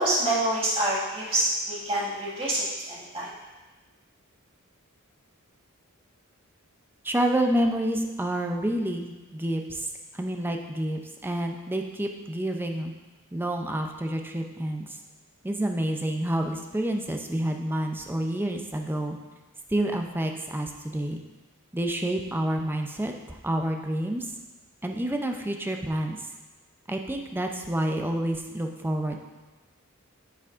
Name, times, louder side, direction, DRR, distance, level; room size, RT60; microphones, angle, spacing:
voice 1, 0.0-3.3, right 1 dB, 25° right, -6 dB, 1.9 m, -26 dB
voice 2, 7.0-9.9 10.2-12.9 13.3-14.8 15.4-19.2 19.7-21.2 21.7-24.3 24.8-26.2 26.9-29.2, right 1 dB, 10° right, 3 dB, 0.5 m, -28 dB
8.4 x 6.9 x 2.5 m, 1.2 s
head